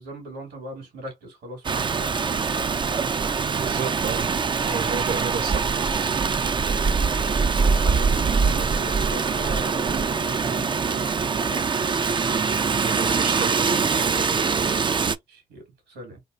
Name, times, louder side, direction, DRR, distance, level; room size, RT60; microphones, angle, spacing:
voice 1, 0.0-2.8 7.7-11.9 14.9-16.2, right 1 dB, 75° right, 1.8 m, -39 dB
Rain, 1.6-15.2, right 5 dB, 25° right, 0.4 m, -23 dB
voice 2, 3.5-4.3 4.6-5.8 12.8-14.2, right 6 dB, 55° right, 0.8 m, -32 dB
3.3 x 2.3 x 2.5 m
hypercardioid pair, 45°, 19 cm